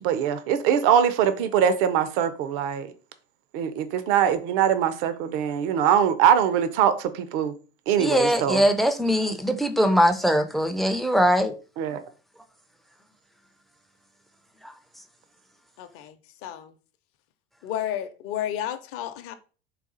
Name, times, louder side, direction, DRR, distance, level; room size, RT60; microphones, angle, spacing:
voice 1, 0.0-2.9 3.5-7.5 7.9-8.6 11.8-12.0, right 9 dB, 60° right, 0.6 m, -22 dB
voice 2, 8.0-11.5 14.6-14.7, equal, ahead, 0.4 m, -21 dB
voice 3, 15.8-16.2 16.4-16.7 17.6-19.3, left 11 dB, 45° left, 0.6 m, -32 dB
4.1 x 2.3 x 3.8 m
hypercardioid pair, 100°, 30 cm